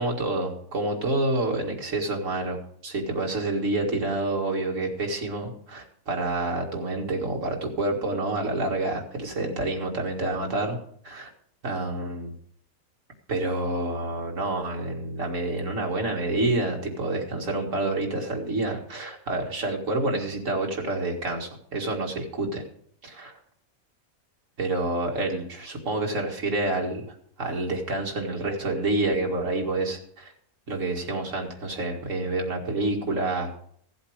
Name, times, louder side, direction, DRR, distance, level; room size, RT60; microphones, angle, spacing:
voice 1, 0.0-10.8 11.0-11.3 11.6-12.3 13.3-22.6 23.0-23.3 24.6-30.3 30.7-33.5, right 2 dB, 55° right, 1 dB, 2.3 m, -28 dB
15.0 x 7.9 x 4.9 m, 0.63 s
omnidirectional pair, 1.6 m